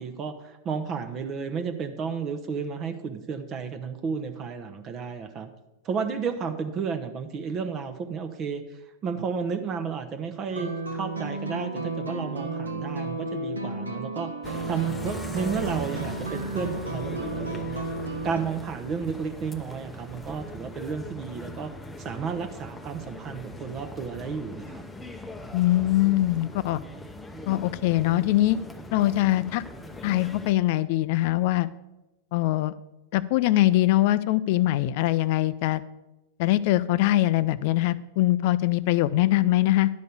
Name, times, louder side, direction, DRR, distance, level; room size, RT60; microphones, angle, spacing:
voice 1, 0.0-5.5 5.8-8.6 9.0-14.3 14.7-17.9 18.2-21.7 22.0-24.8, right 6 dB, 30° right, 7 dB, 0.8 m, -32 dB
sound 1, 10.5-18.4, right 2 dB, 80° right, 1.1 m, -33 dB
sound 2, 14.4-30.5, equal, 10° left, 0.8 m, -40 dB
voice 2, 25.5-26.8 27.5-28.6 28.9-29.6 30.0-31.7 32.3-32.7 33.1-35.8 36.4-39.9, left 16 dB, 50° left, 17 dB, 0.4 m, -22 dB
11.5 x 5.3 x 6.8 m, 1.0 s
figure-of-eight pair, 95°, 0 cm